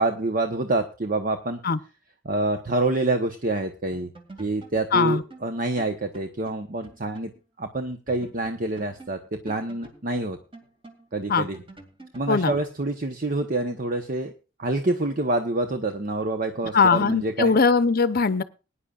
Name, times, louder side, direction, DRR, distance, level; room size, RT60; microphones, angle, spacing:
voice 1, 0.0-1.6 2.2-4.1 4.4-7.3 7.6-9.2 9.4-10.4 11.1-11.6 12.1-14.3 14.6-17.5, right 2 dB, 45° right, 6 dB, 1.0 m, -27 dB
sound 1, 3.9-7.4 7.6-7.7 8.1-12.4, right 2 dB, 30° right, 2.3 m, -48 dB
voice 2, 4.9-5.2 11.3-11.5 12.3-12.5 16.7-18.4, left 4 dB, 50° left, 13 dB, 0.7 m, -20 dB
20.5 x 10.0 x 2.4 m, 0.31 s
head